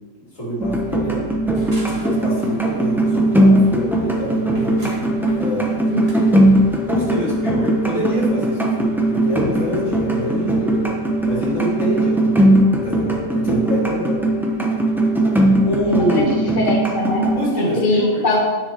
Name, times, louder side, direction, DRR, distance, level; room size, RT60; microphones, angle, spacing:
voice 1, 0.2-1.4 1.9-4.9 5.4-5.9 6.8-11.0 11.3-14.2 15.6-16.4 17.3-18.2, equal, 65° left, -6 dB, 3.2 m, -26 dB
sound 1, 0.6-17.4, right 1 dB, ahead, 0.8 m, -19 dB
sound 2, 1.5-1.9 3.9-4.9 6.9-7.9 9.9-10.9 12.9-13.9, left 9 dB, 85° left, 1.4 m, -33 dB
sound 3, 1.5-6.8, right 3 dB, 25° right, 1.9 m, -36 dB
voice 2, 5.9-6.2 15.9-17.3 17.5-18.4, left 2 dB, 40° left, -3 dB, 1.3 m, -21 dB
9.3 x 6.6 x 4.5 m, 1.3 s
omnidirectional pair, 1.4 m